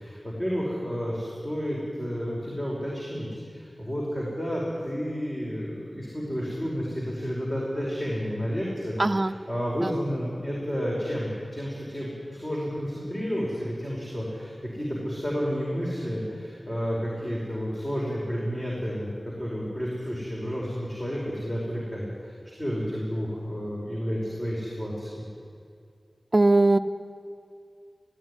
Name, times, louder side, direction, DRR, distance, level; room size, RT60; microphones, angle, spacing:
voice 1, 0.0-22.3 22.6-25.2, equal, 25° left, -5 dB, 5.2 m, -31 dB
voice 2, 9.0-9.3 9.8-9.9 26.3-26.8, right 2 dB, 40° right, 7 dB, 0.7 m, -20 dB
17.0 x 15.5 x 9.8 m, 2.3 s
wide cardioid pair, 45°, 0 cm